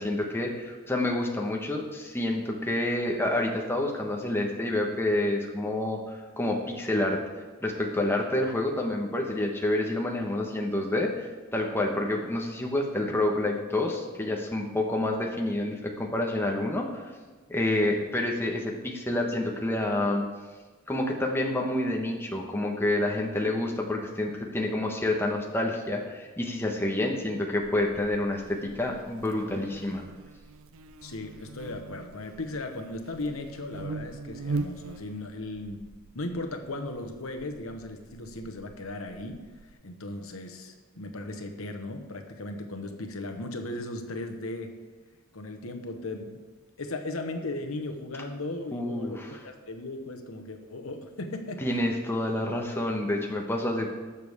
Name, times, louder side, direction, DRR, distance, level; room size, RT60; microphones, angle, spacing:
voice 1, 0.0-6.0 6.4-7.2 7.6-17.1 17.5-20.2 20.9-30.0 48.7-49.3 51.6-53.9, left 1 dB, 10° left, 0 dB, 1.2 m, -28 dB
Buzz, 27.6-39.7, right 3 dB, 70° right, 0.5 m, -42 dB
voice 2, 31.0-35.9 36.1-44.8 45.3-46.4 46.8-51.7, left 2 dB, 75° left, 5 dB, 1.2 m, -37 dB
19.5 x 6.9 x 3.6 m, 1.3 s
head